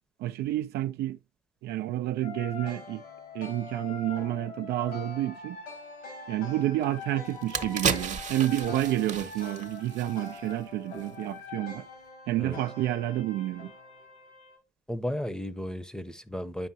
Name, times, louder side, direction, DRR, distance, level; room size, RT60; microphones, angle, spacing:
voice 1, 0.2-1.2 1.6-3.0 3.3-5.6 6.3-11.9 12.3-13.7, right 14 dB, 75° right, 0.4 m, -29 dB
sound 1, 2.2-14.6, left 4 dB, 90° left, 4.6 m, -43 dB
sound 2, 6.8-6.9 7.3-10.6 10.9-11.1, right 6 dB, 45° right, 0.9 m, -33 dB
voice 2, 14.9-16.7, equal, 5° left, 0.7 m, -34 dB
8.4 x 5.3 x 2.7 m
supercardioid pair, 60°, 17 cm